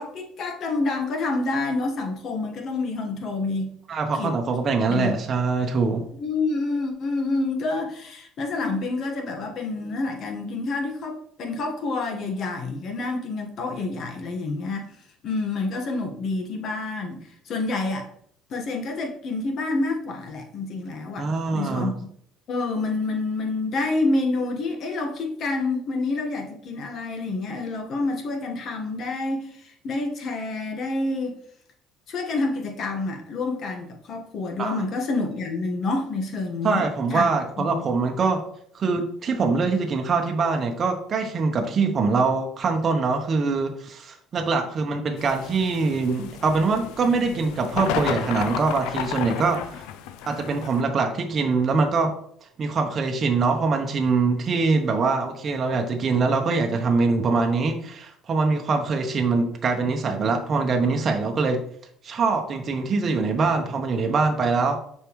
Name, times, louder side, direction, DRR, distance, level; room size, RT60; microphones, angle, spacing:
voice 1, 0.0-3.7 4.2-4.3 4.9-5.2 6.2-14.9 15.2-17.2 17.4-18.1 18.5-22.1 22.5-31.3 32.1-37.3 37.6-37.8, left 3 dB, 55° left, 3 dB, 1.4 m, -28 dB
voice 2, 3.9-6.0 21.2-21.9 34.6-34.8 36.6-38.4 38.7-49.8 50.3-52.1 52.6-61.6 62.0-64.8, right 4 dB, 40° right, 3 dB, 0.9 m, -23 dB
sound 1, 45.2-50.8, left 9 dB, 85° left, 0.4 m, -33 dB
6.7 x 4.6 x 3.1 m, 0.65 s
cardioid pair, 105°, 0 cm